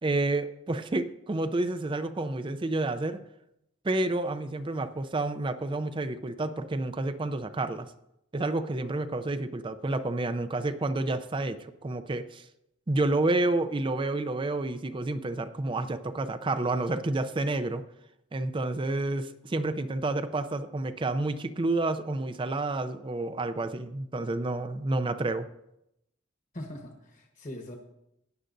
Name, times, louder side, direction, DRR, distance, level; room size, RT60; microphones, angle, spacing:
voice 1, 0.0-3.2 3.8-7.9 8.3-12.4 12.9-17.8 18.3-25.5, right 2 dB, 25° right, 11 dB, 0.5 m, -29 dB
voice 2, 26.5-27.8, left 1 dB, 40° left, 2 dB, 1.2 m, -41 dB
16.5 x 10.0 x 2.6 m, 0.83 s
head